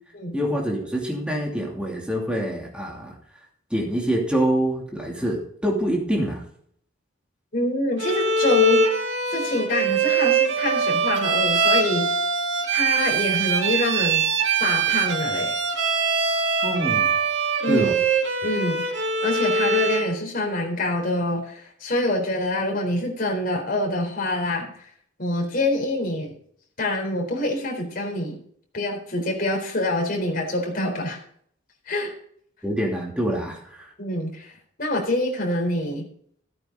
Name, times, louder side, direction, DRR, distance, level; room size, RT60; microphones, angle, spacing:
voice 1, 0.3-3.1 3.7-6.4 16.6-17.1 17.7-17.9 32.6-33.9, right 1 dB, 5° right, -2 dB, 2.8 m, -25 dB
voice 2, 7.5-8.8 9.3-12.1 12.7-14.2 14.6-15.5 17.6-17.9 18.4-24.9 25.2-26.3 26.8-28.4 28.7-31.2 31.9-32.1 34.0-36.1, left 1 dB, 45° left, 0 dB, 4.0 m, -26 dB
Bowed string instrument, 8.0-20.1, right 4 dB, 60° right, 2.0 m, -23 dB
15.5 x 9.1 x 4.0 m, 0.63 s
head